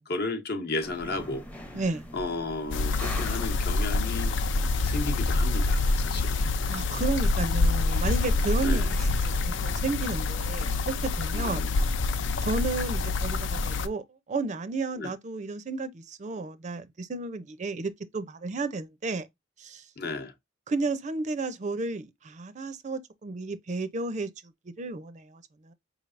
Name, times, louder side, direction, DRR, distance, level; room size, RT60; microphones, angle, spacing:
voice 1, 0.1-1.5 2.1-4.3 4.8-6.4 8.6-8.9 11.3-11.7 15.0-15.1 20.0-20.3, left 2 dB, 55° left, 0.8 m, -33 dB
sound 1, 0.8-10.0, equal, 10° left, 0.6 m, -44 dB
voice 2, 1.7-2.1 6.7-11.7 12.4-19.3 19.6-19.8 20.7-24.3 24.8-25.7, right 3 dB, 40° right, 0.4 m, -32 dB
sound 2, 2.7-13.9, left 3 dB, 70° left, 0.4 m, -26 dB
4.9 x 3.2 x 2.4 m
head